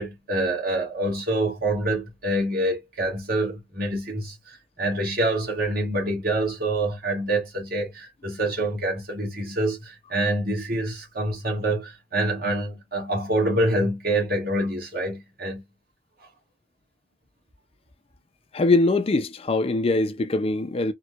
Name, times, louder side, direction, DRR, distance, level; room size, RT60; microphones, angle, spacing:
voice 1, 0.0-15.6, right 1 dB, 50° right, 1.5 m, -26 dB
voice 2, 18.5-20.9, left 2 dB, 30° left, 0.3 m, -22 dB
4.3 x 2.2 x 2.3 m
head